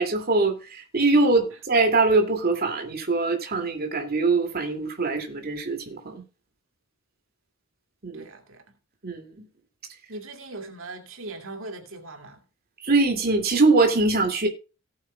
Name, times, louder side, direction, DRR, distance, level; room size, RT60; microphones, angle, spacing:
voice 1, 0.0-6.2 8.0-8.3 9.0-9.3 12.8-14.5, right 3 dB, 50° right, 2.3 m, -22 dB
voice 2, 8.1-8.6 10.1-12.4, right 2 dB, 90° right, 2.3 m, -39 dB
18.0 x 8.5 x 2.3 m
head